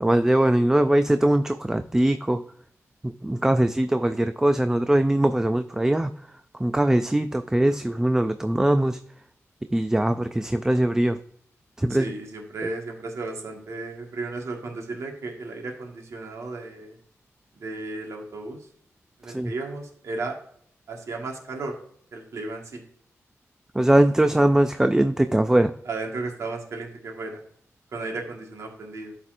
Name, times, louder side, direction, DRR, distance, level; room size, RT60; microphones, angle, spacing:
voice 1, 0.0-2.4 3.0-6.1 6.6-9.0 9.7-11.2 11.8-12.1 19.3-19.5 23.7-25.7, right 1 dB, 10° right, 9 dB, 0.3 m, -21 dB
voice 2, 11.9-17.0 17.6-18.6 19.2-20.4 20.9-21.7 22.1-22.8 25.8-27.4 27.9-29.2, right 3 dB, 70° right, 2 dB, 1.6 m, -34 dB
12.0 x 4.2 x 2.5 m, 0.63 s
wide cardioid pair, 110°, 5 cm